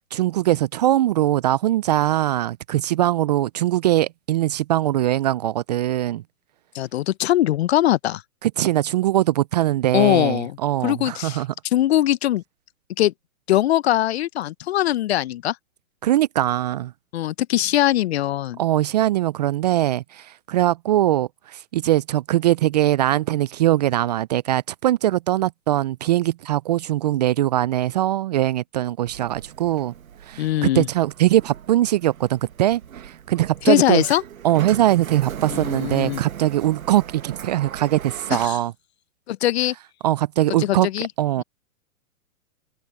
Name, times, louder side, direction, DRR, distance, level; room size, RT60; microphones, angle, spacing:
voice 1, 0.1-6.2 8.4-11.5 16.0-16.9 18.6-29.9 30.3-34.0 34.4-38.7 40.0-40.9 41.2-41.4, right 14 dB, 30° right, 0.5 m, -21 dB
voice 2, 6.7-8.2 9.9-10.6 10.8-12.4 13.0-13.1 13.5-15.5 17.1-18.6 30.4-30.9 33.6-34.2 35.5-36.2 38.3-38.6 39.3-39.7 40.6-41.1 41.4-41.5, left 13 dB, 50° left, 0.8 m, -21 dB
Sliding door, 29.1-38.5, right 9 dB, 75° right, 1.8 m, -38 dB
open air
hypercardioid pair, 135°, 42 cm